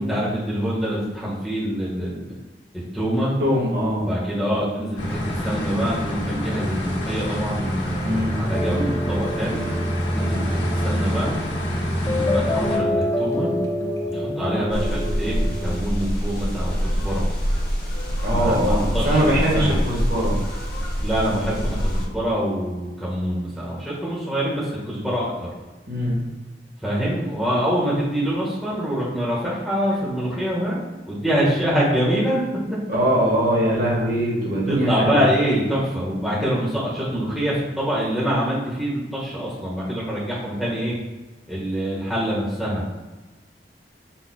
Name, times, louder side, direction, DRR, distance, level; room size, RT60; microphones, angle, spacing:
voice 1, 0.0-2.3 2.9-3.4 4.0-9.7 10.1-11.4 12.0-13.5 14.1-17.3 18.3-19.8 21.0-25.5 26.8-30.8 31.1-32.4 34.7-40.9 41.5-42.8, equal, ahead, -9 dB, 1.4 m, -25 dB
voice 2, 3.4-4.1 8.0-8.4 18.2-20.4 25.9-26.2 32.9-35.2, equal, 55° right, -5 dB, 1.5 m, -22 dB
sound 1, 5.0-12.8, left 1 dB, 85° left, 1.3 m, -28 dB
sound 2, 8.5-15.8, left 1 dB, 15° left, 0.4 m, -26 dB
sound 3, 14.7-22.1, equal, 55° left, 1.0 m, -25 dB
5.4 x 4.2 x 2.3 m, 1.2 s
head